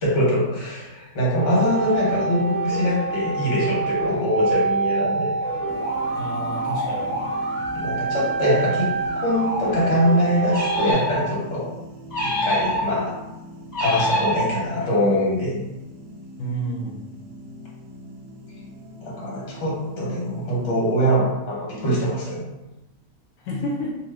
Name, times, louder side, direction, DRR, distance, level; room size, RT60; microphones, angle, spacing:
voice 1, 0.0-5.3 7.7-8.9 9.2-11.7 12.2-13.2 13.8-15.6 19.0-22.4, equal, 65° left, -5 dB, 1.3 m, -23 dB
sound 1, 1.4-10.9, right 3 dB, 5° right, 0.6 m, -26 dB
sound 2, 5.7-21.0, equal, 75° right, 0.9 m, -40 dB
voice 2, 6.1-7.2 16.4-17.0 23.4-24.0, right 1 dB, 85° left, -4 dB, 1.0 m, -30 dB
sound 3, 10.5-11.5 12.1-13.2 13.7-14.9, equal, 40° left, 0.7 m, -25 dB
2.5 x 2.5 x 3.2 m, 0.97 s
omnidirectional pair, 1.4 m